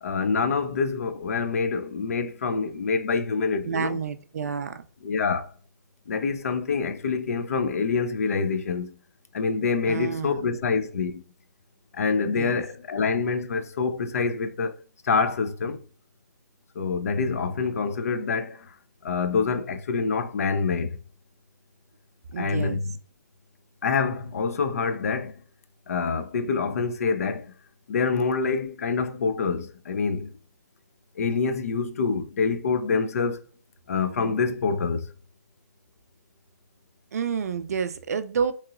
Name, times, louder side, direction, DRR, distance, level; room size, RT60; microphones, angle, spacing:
voice 1, 0.0-4.0 5.0-5.5 6.1-8.9 9.3-11.2 11.9-14.8 15.0-15.8 16.8-18.6 19.0-21.0 22.4-22.8 23.8-25.3 25.9-27.5 27.9-30.3 31.2-33.4 33.9-35.1, left 5 dB, 55° left, 0.4 m, -26 dB
voice 2, 3.7-4.8 9.9-10.5 12.2-12.6 22.3-22.8 37.1-38.5, right 6 dB, 60° right, 0.4 m, -29 dB
2.9 x 2.8 x 2.4 m
hypercardioid pair, 175°, 10 cm